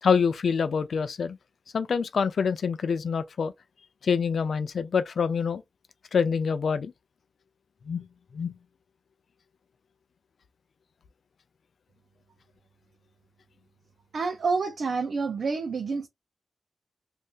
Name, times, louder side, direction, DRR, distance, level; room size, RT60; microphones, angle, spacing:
voice 1, 0.0-1.4 1.7-3.5 4.0-5.6 6.1-6.9 7.9-8.1 8.3-8.5, left 6 dB, 85° left, 0.4 m, -26 dB
voice 2, 14.1-16.1, right 4 dB, 75° right, 0.6 m, -28 dB
2.7 x 2.4 x 3.5 m
wide cardioid pair, 120°, 0 cm